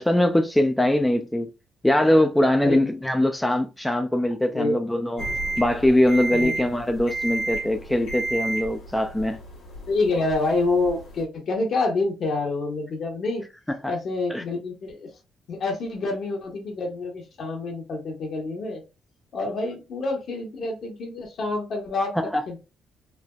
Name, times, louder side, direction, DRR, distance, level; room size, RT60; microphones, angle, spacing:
voice 1, 0.0-1.5 1.8-5.3 5.6-9.4 13.8-13.9 14.3-14.4 22.2-22.4, left 1 dB, 5° left, 0.3 m, -22 dB
sound 1, 5.2-11.2, right 2 dB, 85° left, 1.0 m, -32 dB
voice 2, 9.9-13.4 13.9-15.1 15.5-18.8 19.3-22.6, left 3 dB, 60° left, 1.0 m, -27 dB
3.2 x 2.0 x 2.3 m
cardioid pair, 90°, 0 cm